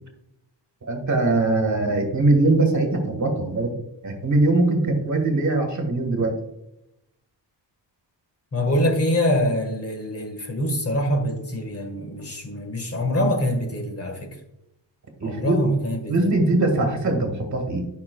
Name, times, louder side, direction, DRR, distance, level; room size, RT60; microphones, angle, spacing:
voice 1, 0.8-3.8 4.0-6.3 15.2-15.6 16.1-17.8, right 2 dB, 40° right, 4 dB, 1.7 m, -21 dB
voice 2, 8.5-14.4 15.2-16.3, equal, 30° left, 4 dB, 1.5 m, -24 dB
11.0 x 5.8 x 2.3 m, 0.84 s
wide cardioid pair, 150°, 45 cm